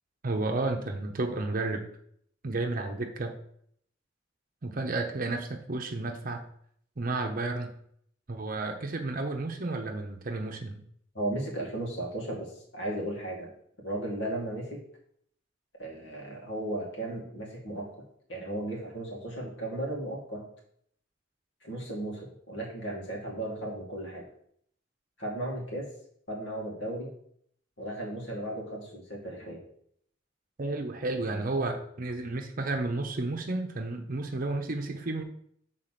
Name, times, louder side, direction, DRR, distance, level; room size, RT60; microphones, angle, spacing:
voice 1, 0.2-1.8 2.4-3.4 4.6-6.4 7.0-7.7 8.3-10.8 30.6-35.2, right 2 dB, 50° right, 4 dB, 0.7 m, -32 dB
voice 2, 11.1-13.5 13.8-14.8 15.8-17.9 18.3-20.5 21.6-24.2 25.2-25.9 26.3-27.1 27.8-29.6, right 1 dB, 85° left, -2 dB, 2.4 m, -35 dB
6.6 x 4.0 x 5.8 m, 0.67 s
head